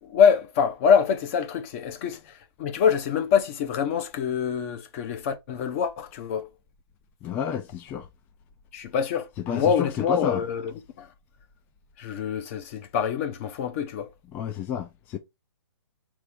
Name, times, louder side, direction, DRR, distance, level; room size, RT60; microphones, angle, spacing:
voice 1, 0.0-6.5 8.7-11.1 12.0-14.1, left 7 dB, 35° left, 0.8 m, -25 dB
voice 2, 7.2-8.1 9.5-10.4 14.3-15.2, left 9 dB, 15° left, 0.3 m, -30 dB
4.0 x 3.2 x 3.4 m
hypercardioid pair, 150°, 13 cm